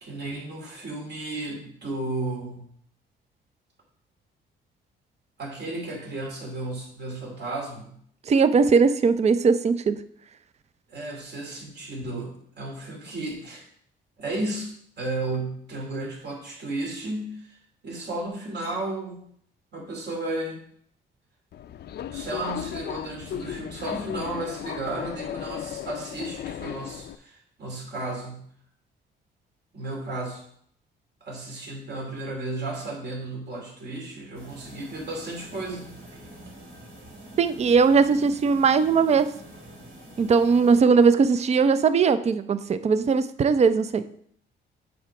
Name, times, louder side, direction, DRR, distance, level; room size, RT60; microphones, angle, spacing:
voice 1, 0.0-2.7 5.4-7.9 10.9-13.7 14.2-14.7 15.0-17.6 17.8-19.2 19.7-20.6 22.1-28.5 29.7-30.4 31.2-36.0, right 2 dB, 60° right, -1 dB, 2.7 m, -33 dB
voice 2, 8.3-10.0 37.4-39.3 40.2-44.1, right 5 dB, 35° right, 13 dB, 0.5 m, -19 dB
Subway metro underground, 21.5-27.2, left 10 dB, 55° left, 0.4 m, -35 dB
sound 1, 34.3-40.8, right 1 dB, 80° right, 2.8 m, -45 dB
7.9 x 3.8 x 5.9 m, 0.64 s
cardioid pair, 90°, 20 cm